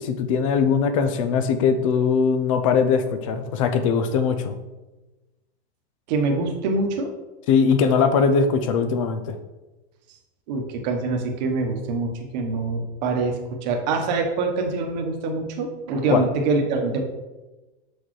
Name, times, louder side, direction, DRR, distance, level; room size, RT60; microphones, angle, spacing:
voice 1, 0.0-4.5 7.5-9.4 16.1-16.2, left 6 dB, 30° left, 9 dB, 0.4 m, -21 dB
voice 2, 6.1-7.1 10.5-17.0, right 3 dB, 40° right, 3 dB, 1.1 m, -25 dB
6.9 x 6.3 x 3.1 m, 1.1 s
supercardioid pair, 165°, 33 cm